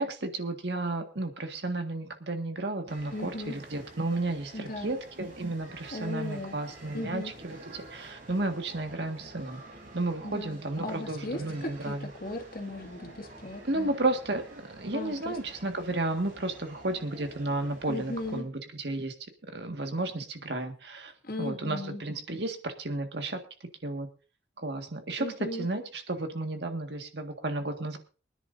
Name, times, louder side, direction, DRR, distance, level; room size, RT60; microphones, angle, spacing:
voice 1, 0.0-9.6 9.9-12.1 13.6-19.1 19.5-21.1 21.4-23.4 23.8-24.1 24.6-28.0, right 2 dB, 70° right, 5 dB, 1.8 m, -33 dB
sound 1, 2.9-18.4, right 1 dB, 50° right, 4.0 m, -49 dB
voice 2, 3.1-3.6 4.5-4.9 5.9-6.6 6.9-7.3 10.2-13.9 14.9-15.4 17.9-18.4 21.2-22.0 25.2-25.7, left 2 dB, 55° left, 3 dB, 2.2 m, -37 dB
24.0 x 10.0 x 2.7 m, 0.37 s
head